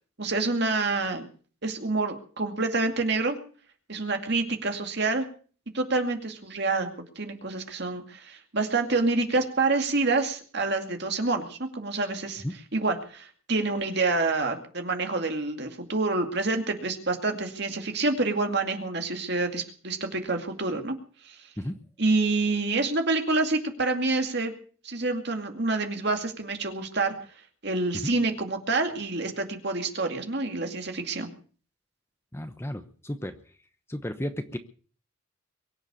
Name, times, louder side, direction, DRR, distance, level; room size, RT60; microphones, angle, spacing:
voice 1, 0.2-1.3 1.6-3.4 3.9-5.3 5.7-6.9 7.2-12.4 12.7-21.0 21.3-21.4 22.0-24.5 24.8-27.1 27.6-31.3, right 3 dB, 55° right, 5 dB, 2.3 m, -27 dB
voice 2, 32.3-33.3 33.9-34.6, left 1 dB, 10° left, 9 dB, 0.9 m, -33 dB
23.0 x 8.0 x 6.8 m, 0.43 s
head